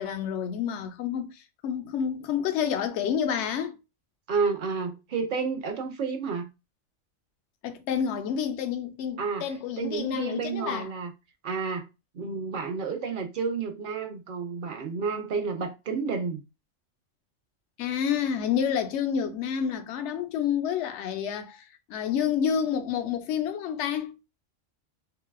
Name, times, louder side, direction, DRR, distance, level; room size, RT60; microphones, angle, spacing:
voice 1, 0.0-3.8 7.6-10.9 17.8-24.2, left 8 dB, 70° left, 0.8 m, -29 dB
voice 2, 4.3-6.5 9.2-9.5 9.8-11.1 11.4-11.9 12.1-16.4, right 5 dB, 65° right, 0.5 m, -30 dB
3.8 x 2.3 x 2.2 m
omnidirectional pair, 1.3 m